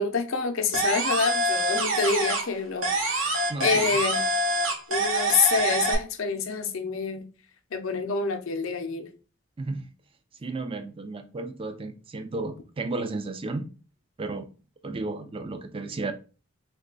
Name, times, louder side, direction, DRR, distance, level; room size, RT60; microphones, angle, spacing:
voice 1, 0.0-4.2 4.9-7.3 7.7-9.1, left 5 dB, 75° left, 0.6 m, -27 dB
sound 1, 0.7-2.6 2.8-5.9, right 2 dB, 70° right, 0.9 m, -25 dB
voice 2, 3.5-4.0 9.6-9.9 10.4-13.7 14.2-14.5 14.8-16.1, right 3 dB, 25° right, 0.4 m, -33 dB
3.1 x 2.3 x 3.8 m
head